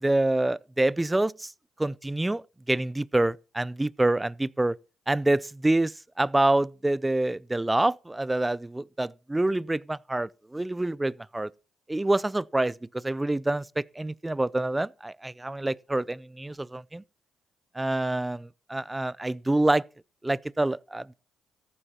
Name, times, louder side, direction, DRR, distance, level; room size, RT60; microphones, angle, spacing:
voice 1, 0.0-1.3 1.8-2.4 2.7-4.7 5.1-5.9 6.2-11.5 11.9-17.0 17.8-19.8 20.2-21.1, right 2 dB, 15° right, 0.4 m, -26 dB
14.0 x 10.0 x 2.9 m
supercardioid pair, 65°, 0 cm